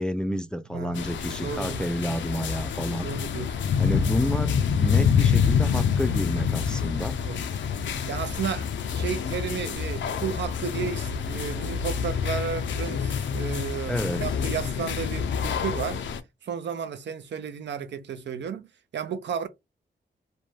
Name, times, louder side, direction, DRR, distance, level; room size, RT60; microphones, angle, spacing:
voice 1, 0.0-3.1 3.8-7.2 13.9-14.2, equal, 5° left, 0.4 m, -30 dB
sound 1, 1.0-16.2, left 7 dB, 75° left, 0.4 m, -27 dB
voice 2, 1.4-1.8 3.0-3.7 7.2-7.4 8.1-14.0 14.2-16.0 16.4-18.7 18.9-19.5, right 7 dB, 70° right, 0.5 m, -33 dB
2.5 x 2.2 x 3.1 m
cardioid pair, 80°, 19 cm